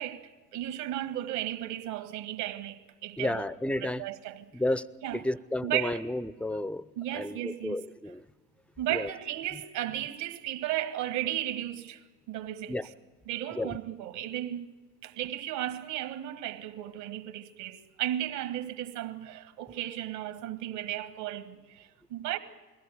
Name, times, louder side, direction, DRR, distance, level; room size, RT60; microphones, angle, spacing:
voice 1, 0.0-3.5 3.8-4.4 5.0-5.2 5.6-6.0 7.0-7.8 8.8-12.0 12.3-12.8 13.3-14.7 15.0-22.4, right 12 dB, 60° right, 1.9 m, -35 dB
voice 2, 3.2-4.0 4.5-4.9 5.1-6.8 7.1-8.2 8.9-9.1 12.7-12.9 13.6-13.8, left 1 dB, 5° left, 0.6 m, -31 dB
21.5 x 16.5 x 9.3 m
hypercardioid pair, 70°, 46 cm